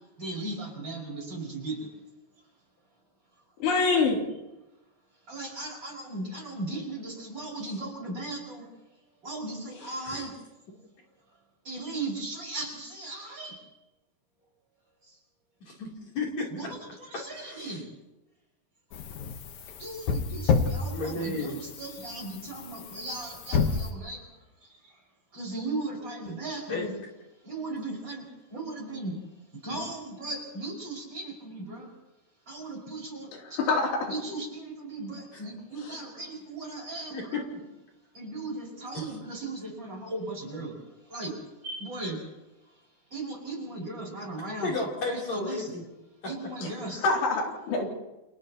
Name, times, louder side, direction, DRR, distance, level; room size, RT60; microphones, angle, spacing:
voice 1, 0.2-1.9 5.3-8.7 9.2-10.3 11.6-13.6 16.5-17.9 19.8-24.2 25.3-26.9 27.4-28.2 28.5-29.2 29.6-31.9 32.5-33.6 34.1-37.4 38.1-40.8 41.1-41.3 41.6-42.2 43.1-44.8 45.1-45.7 46.2-47.0, right 2 dB, 25° right, -2 dB, 6.2 m, -37 dB
voice 2, 3.6-4.3 33.3-34.1 35.8-36.0 46.6-46.7 47.0-47.9, left 4 dB, 85° left, -1 dB, 5.4 m, -26 dB
voice 3, 15.7-16.5 17.3-17.8 20.9-21.6 26.7-26.9 37.1-37.6 38.9-39.1 44.6-45.8, left 3 dB, 45° left, -2 dB, 4.5 m, -33 dB
sound 1, 18.9-23.9, left 5 dB, 65° left, 2.0 m, -30 dB
29.5 x 29.0 x 3.0 m, 0.99 s
omnidirectional pair, 4.8 m